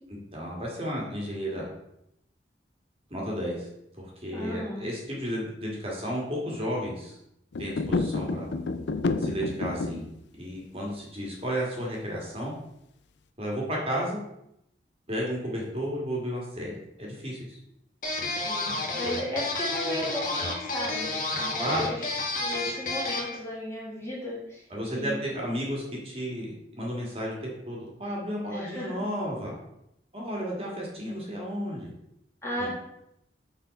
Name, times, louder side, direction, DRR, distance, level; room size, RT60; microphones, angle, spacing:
voice 1, 0.3-1.7 3.1-3.7 4.0-7.2 7.6-8.5 9.2-10.1 10.4-12.5 13.4-14.2 15.1-16.7 17.0-17.6 21.6-21.9 24.7-29.5 30.1-31.9 32.6-32.7, equal, 35° right, -3 dB, 1.7 m, -33 dB
voice 2, 4.3-4.8 18.5-22.1 22.4-24.6 25.0-25.2 28.5-29.0 32.4-32.7, equal, 15° left, -5 dB, 1.7 m, -35 dB
sound 1, 7.5-10.1, left 3 dB, 85° left, 0.5 m, -29 dB
sound 2, 18.0-23.4, left 2 dB, 50° left, 1.4 m, -31 dB
6.3 x 4.1 x 5.2 m, 0.80 s
head